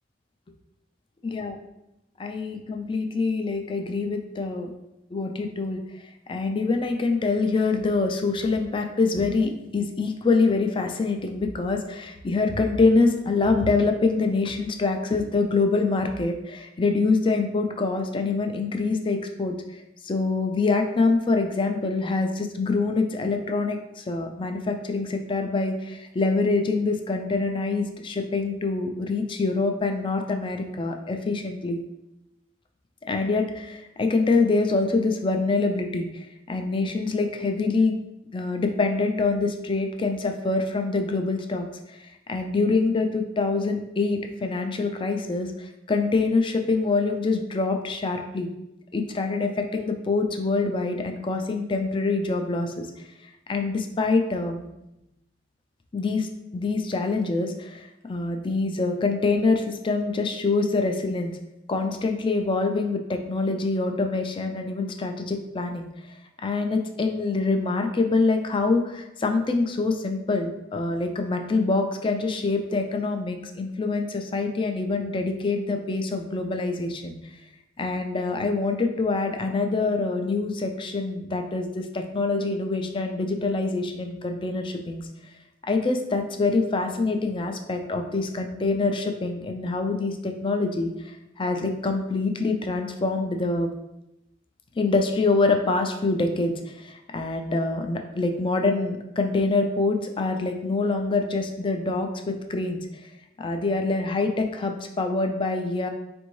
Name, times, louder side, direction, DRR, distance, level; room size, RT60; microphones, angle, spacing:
voice 1, 1.2-1.6 2.2-4.7 5.1-5.8 6.3-19.6 20.0-31.8 33.1-38.0 38.3-41.7 42.0-48.5 48.9-52.9 53.5-54.6 55.9-57.8 58.1-61.3 61.7-65.9 66.4-77.2 77.8-85.0 85.6-93.7 94.8-103.1 103.4-105.9, left 3 dB, 25° left, 5 dB, 0.3 m, -25 dB
4.4 x 2.6 x 3.1 m, 0.88 s
head